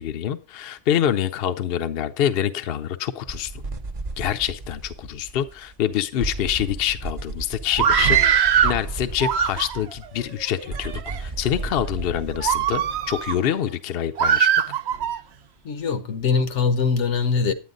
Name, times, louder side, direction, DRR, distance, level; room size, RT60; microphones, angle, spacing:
voice 1, 0.0-3.5 4.2-10.9 11.2-14.5, left 10 dB, 60° left, 0.8 m, -26 dB
sound 1, 3.3-5.9 6.2-13.4, right 3 dB, 35° right, 0.8 m, -34 dB
Screaming, 7.7-8.8 9.2-9.9 10.6-11.2 11.7-11.9 12.4-13.4 14.2-15.2, right 8 dB, 65° right, 0.9 m, -21 dB
voice 2, 15.6-17.5, left 5 dB, 80° left, 1.3 m, -22 dB
10.0 x 9.4 x 3.8 m
omnidirectional pair, 1.2 m